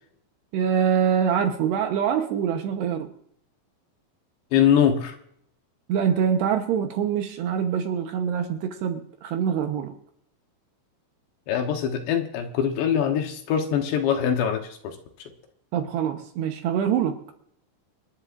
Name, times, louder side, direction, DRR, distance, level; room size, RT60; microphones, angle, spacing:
voice 1, 0.5-3.1 5.9-9.9 15.7-17.2, right 8 dB, 70° right, 5 dB, 2.9 m, -24 dB
voice 2, 4.5-5.2 11.5-15.0, left 8 dB, 70° left, 4 dB, 3.1 m, -23 dB
27.0 x 11.0 x 2.6 m, 0.68 s
omnidirectional pair, 5.5 m